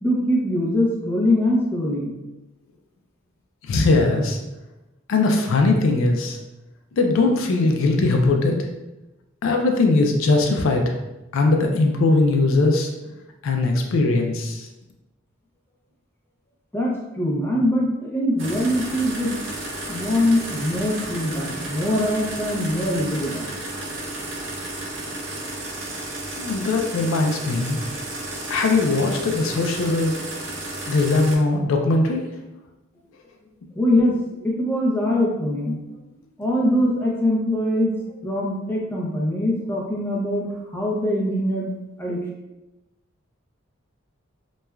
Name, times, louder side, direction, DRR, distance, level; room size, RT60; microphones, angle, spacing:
voice 1, 0.0-2.1 16.7-19.4 19.9-23.5 33.7-34.2 34.4-35.8 36.4-37.9 38.2-41.7 42.0-42.2, left 1 dB, 10° left, -4 dB, 0.5 m, -22 dB
voice 2, 3.7-4.4 5.1-6.4 6.9-8.7 9.4-10.9 11.3-12.9 13.4-14.7 26.4-27.8 28.5-30.1 30.9-32.4, left 3 dB, 75° left, 3 dB, 0.3 m, -20 dB
sound 1, 18.4-31.4, right 2 dB, 65° right, 0.5 m, -32 dB
3.0 x 2.2 x 2.2 m, 1.0 s
head